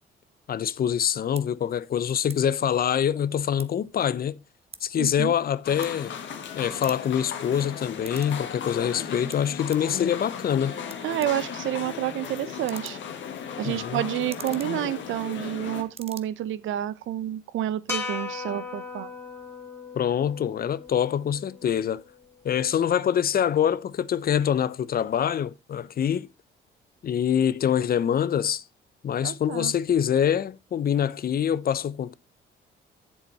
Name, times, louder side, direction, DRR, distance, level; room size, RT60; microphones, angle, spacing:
voice 1, 0.5-4.4 4.8-6.1 6.5-10.8 13.6-14.0 20.0-22.0 22.4-26.3 27.0-28.6 29.0-32.1, left 9 dB, 50° left, 0.6 m, -25 dB
sound 1, 1.3-1.5 2.2-2.4 2.7-3.9 4.3-6.4 6.7-8.4 8.7-9.9 10.5-10.6 10.9-15.6 15.8-16.2, right 5 dB, 30° right, 0.9 m, -46 dB
voice 2, 4.9-5.3 11.0-13.0 13.6-19.1 29.2-29.7, right 13 dB, 80° right, 0.7 m, -29 dB
sound 2, 5.6-15.8, left 7 dB, 70° left, 1.9 m, -36 dB
sound 3, 17.9-22.2, left 4 dB, 10° left, 2.3 m, -37 dB
8.0 x 7.4 x 4.1 m
cardioid pair, 90°, 20 cm